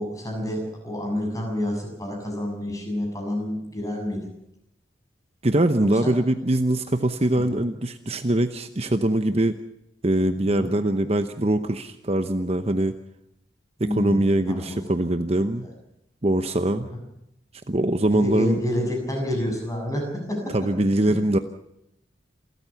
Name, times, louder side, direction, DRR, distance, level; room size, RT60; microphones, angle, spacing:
voice 1, 0.0-4.3 5.8-6.1 7.3-7.6 10.4-10.7 13.8-14.2 14.5-15.7 16.9-17.0 18.1-20.7 21.1-21.2, left 1 dB, 20° left, 2 dB, 7.4 m, -29 dB
voice 2, 5.4-9.6 10.0-13.0 13.8-15.7 16.2-16.9 17.7-18.6 20.5-21.4, right 1 dB, 35° right, 9 dB, 0.9 m, -22 dB
28.5 x 14.0 x 7.1 m, 0.80 s
head